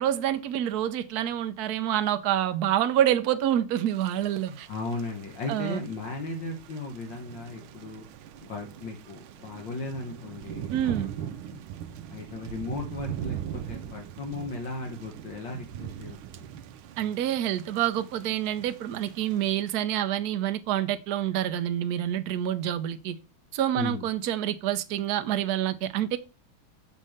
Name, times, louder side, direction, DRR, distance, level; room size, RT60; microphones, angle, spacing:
voice 1, 0.0-4.7 5.5-5.8 10.7-11.1 17.0-23.1 23.5-26.2, right 11 dB, 60° right, 1.1 m, -27 dB
Thunder / Rain, 3.9-19.5, right 10 dB, 90° right, 1.5 m, -41 dB
voice 2, 4.5-8.1 8.4-11.6 12.1-16.5 23.8-24.0, left 3 dB, 65° left, 2.0 m, -36 dB
6.5 x 4.5 x 6.5 m
omnidirectional pair, 2.2 m